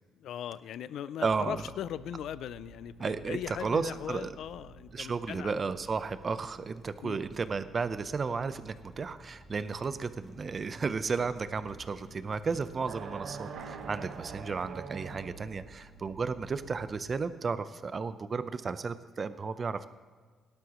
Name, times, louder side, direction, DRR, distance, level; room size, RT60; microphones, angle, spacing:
voice 1, 0.2-5.6 7.0-7.2, left 10 dB, 75° left, 17 dB, 0.3 m, -39 dB
voice 2, 1.2-1.6 3.0-4.4 4.9-19.9, right 5 dB, 40° right, 12 dB, 0.7 m, -33 dB
sound 1, 1.3-17.1, right 3 dB, 20° left, 3.9 m, -54 dB
sound 2, 10.1-15.2, equal, 10° right, 3.6 m, -54 dB
sound 3, 12.8-15.7, right 5 dB, 75° right, 1.2 m, -43 dB
17.5 x 12.0 x 3.1 m, 1.5 s
cardioid pair, 90°, 0 cm